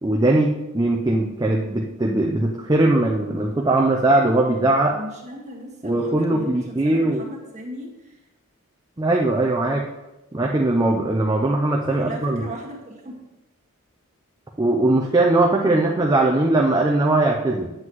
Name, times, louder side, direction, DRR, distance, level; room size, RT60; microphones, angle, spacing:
voice 1, 0.0-5.0 5.8-7.2 9.0-9.8 10.3-12.4 14.6-17.7, right 2 dB, 20° right, -1 dB, 0.5 m, -20 dB
voice 2, 4.9-8.2 11.9-13.2, equal, 35° right, 0 dB, 1.6 m, -37 dB
7.8 x 7.7 x 3.0 m, 1.0 s
head